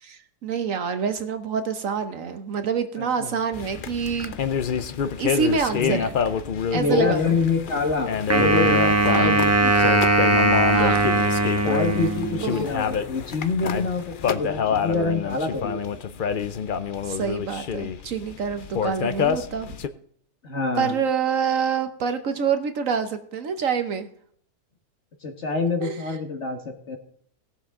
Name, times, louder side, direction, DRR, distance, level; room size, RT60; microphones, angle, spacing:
voice 1, 0.0-4.4 5.2-6.1 6.7-7.4 9.1-9.4 10.7-11.1 12.4-12.7 17.1-19.7 20.8-24.1 25.8-26.1, right 6 dB, 60° right, 8 dB, 1.2 m, -27 dB
voice 2, 3.0-3.3 5.7-6.1 6.7-10.0 11.6-16.0 20.4-21.0 25.2-27.0, left 4 dB, 45° left, 4 dB, 1.7 m, -26 dB
sound 1, 3.5-19.9, left 7 dB, 65° left, 0.5 m, -27 dB
Wind instrument woodwind instrument, 8.3-12.6, right 2 dB, 10° right, 0.9 m, -20 dB
18.5 x 7.1 x 3.7 m, 0.62 s
omnidirectional pair, 1.7 m